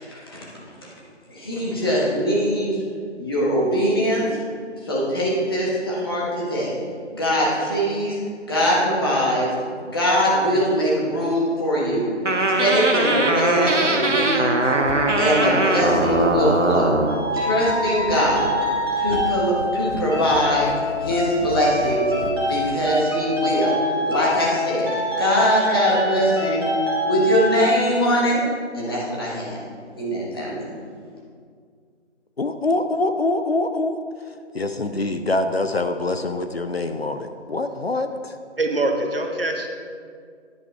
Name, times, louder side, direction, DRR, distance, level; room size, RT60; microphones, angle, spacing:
voice 1, 0.1-0.4 1.3-2.8 3.2-4.3 4.8-6.8 7.1-8.2 8.5-9.5 9.8-12.1 12.4-14.6 15.2-16.9 17.3-18.5 18.9-20.7 21.0-22.1 22.4-24.9 25.2-26.7 27.0-28.4 28.7-29.6 29.9-30.6, equal, 20° left, -6 dB, 1.4 m, -22 dB
sound 1, 12.3-17.2, right 2 dB, 75° right, 1.2 m, -21 dB
sound 2, 14.4-23.3, left 1 dB, 75° left, 1.1 m, -36 dB
sound 3, 17.1-28.0, left 1 dB, 20° right, 1.8 m, -25 dB
voice 2, 32.4-34.0 34.5-38.3, left 2 dB, 55° left, 8 dB, 0.6 m, -24 dB
voice 3, 38.6-39.7, right 2 dB, 50° right, 3 dB, 1.1 m, -23 dB
9.9 x 9.1 x 3.4 m, 2.1 s
figure-of-eight pair, 155°, 36 cm